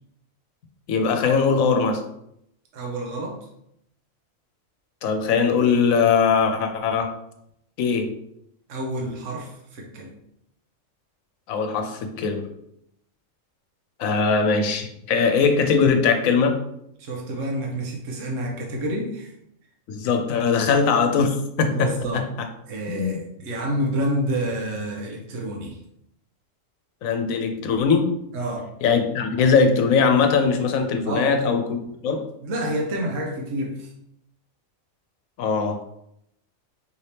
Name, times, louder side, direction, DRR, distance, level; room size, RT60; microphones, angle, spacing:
voice 1, 0.9-2.0 5.0-7.1 7.8-8.1 11.5-12.5 14.0-16.6 19.9-22.2 22.9-23.2 27.0-28.1 28.8-32.2 35.4-35.8, left 5 dB, 90° left, 6 dB, 1.1 m, -21 dB
voice 2, 2.7-3.4 8.7-10.2 17.0-19.3 21.7-22.2 22.6-25.8 28.3-28.7 31.0-31.3 32.4-33.9, right 1 dB, 70° right, -1 dB, 1.2 m, -28 dB
4.9 x 2.8 x 3.3 m, 0.77 s
omnidirectional pair, 1.4 m